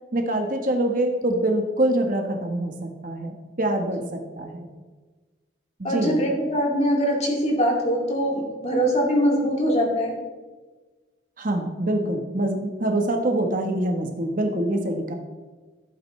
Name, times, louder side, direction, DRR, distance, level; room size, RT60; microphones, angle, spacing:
voice 1, 0.1-4.7 5.8-6.2 11.4-15.1, right 1 dB, 45° right, 3 dB, 1.1 m, -25 dB
voice 2, 5.8-10.1, equal, 35° left, -2 dB, 2.4 m, -22 dB
15.0 x 8.6 x 3.2 m, 1.3 s
head